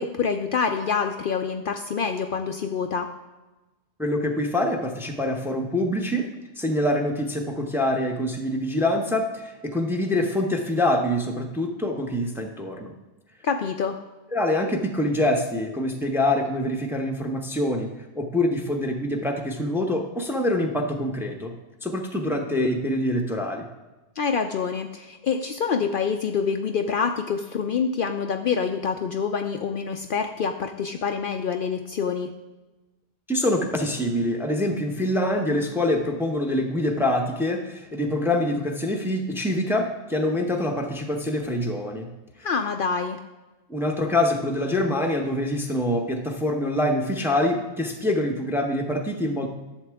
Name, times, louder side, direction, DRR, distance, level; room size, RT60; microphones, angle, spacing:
voice 1, 0.0-3.1 13.4-14.0 24.2-32.3 42.4-43.2, left 6 dB, 60° left, 6 dB, 0.7 m, -26 dB
voice 2, 4.0-6.2 6.6-12.9 14.3-17.9 18.2-21.5 21.8-23.7 33.3-42.1 43.7-49.5, left 1 dB, ahead, 3 dB, 0.7 m, -25 dB
11.0 x 7.3 x 3.5 m, 1.1 s
omnidirectional pair, 1.1 m